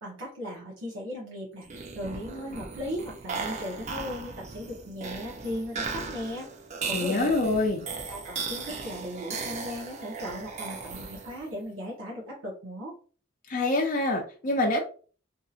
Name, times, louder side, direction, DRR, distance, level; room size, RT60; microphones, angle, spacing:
voice 1, 0.0-1.7 1.9-6.5 6.9-7.3 8.1-12.9, equal, 85° right, -4 dB, 1.0 m, -37 dB
sound 1, 1.6-11.5, right 4 dB, 35° right, 0.5 m, -37 dB
voice 2, 6.9-7.9 13.5-14.8, left 2 dB, 45° left, 1 dB, 0.5 m, -25 dB
2.8 x 2.7 x 2.4 m, 0.40 s
head